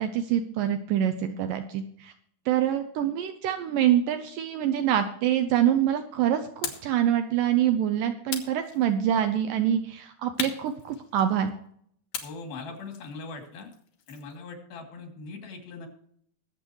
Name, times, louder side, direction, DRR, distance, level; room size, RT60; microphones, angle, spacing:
voice 1, 0.0-2.1 2.5-6.4 6.8-11.5, right 10 dB, 75° right, 8 dB, 2.3 m, -25 dB
sound 1, 6.6-7.0 8.3-9.2 10.4-11.5 12.1-14.4, left 8 dB, 65° left, 2.8 m, -38 dB
voice 2, 12.2-13.7 14.1-15.9, left 3 dB, 80° left, 3 dB, 4.6 m, -40 dB
22.5 x 8.0 x 3.1 m, 0.65 s
omnidirectional pair, 4.2 m